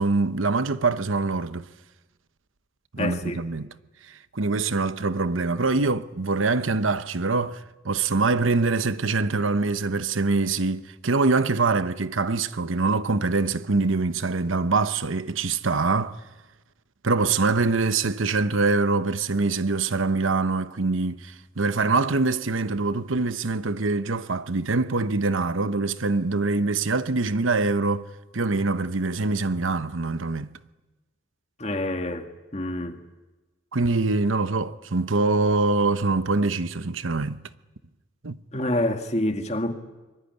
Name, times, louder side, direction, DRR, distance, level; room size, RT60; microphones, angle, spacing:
voice 1, 0.0-1.7 2.9-3.7 4.3-16.2 17.0-28.1 28.3-30.5 33.7-37.4 38.2-38.4, right 3 dB, 90° right, 1.0 m, -24 dB
voice 2, 3.0-3.4 31.6-33.0 38.5-39.7, left 1 dB, 35° left, 2.1 m, -27 dB
24.5 x 22.0 x 9.8 m
head